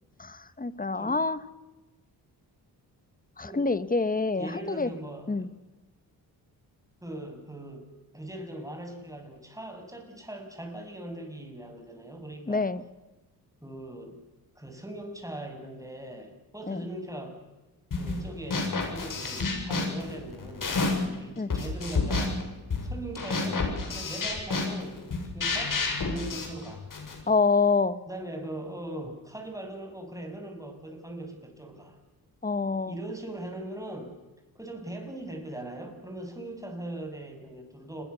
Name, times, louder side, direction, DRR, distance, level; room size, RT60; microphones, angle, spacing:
voice 1, 0.2-1.4 3.4-4.9 5.3-5.5 12.5-12.8 16.7-16.8 21.4-21.5 27.3-28.0 32.4-32.9, left 4 dB, 20° left, 14 dB, 1.5 m, -26 dB
voice 2, 4.4-5.5 7.0-7.9 8.1-12.7 13.6-14.2 14.6-17.4 18.0-20.7 21.2-22.4 22.8-25.0 25.3-26.8 28.1-32.0 32.9-34.2 34.6-38.0, right 1 dB, 10° right, 4 dB, 7.4 m, -40 dB
sound 1, 17.9-18.2 18.5-21.1 21.5-27.2, left 3 dB, 55° left, 7.8 m, -30 dB
30.0 x 21.0 x 7.1 m, 1.1 s
cardioid pair, 75°, 39 cm